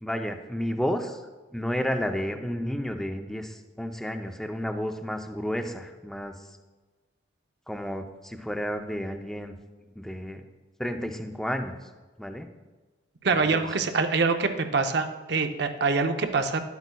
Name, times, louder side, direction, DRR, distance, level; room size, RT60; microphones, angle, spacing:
voice 1, 0.0-1.2 1.5-6.5 7.7-9.6 9.8-10.4 10.8-11.9 12.2-12.5 13.3-13.7, equal, ahead, 5 dB, 0.5 m, -32 dB
voice 2, 13.2-16.6, right 4 dB, 55° right, 7 dB, 0.6 m, -25 dB
11.0 x 8.1 x 2.2 m, 1.3 s
head